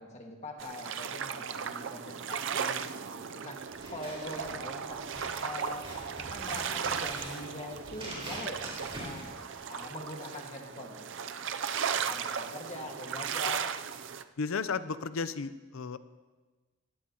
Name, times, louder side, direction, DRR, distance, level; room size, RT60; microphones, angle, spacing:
voice 1, 0.0-3.6 3.9-5.0 5.4-5.9 6.2-9.2 9.7-11.1 11.9-13.7, left 1 dB, 30° left, 1 dB, 1.7 m, -43 dB
sound 1, 0.6-14.2, right 7 dB, 60° right, 0.5 m, -36 dB
Scissors, 3.7-9.9, right 1 dB, 25° right, 4.3 m, -44 dB
voice 2, 14.4-16.0, left 5 dB, 75° left, 14 dB, 0.6 m, -34 dB
17.5 x 16.0 x 2.9 m, 1.3 s
head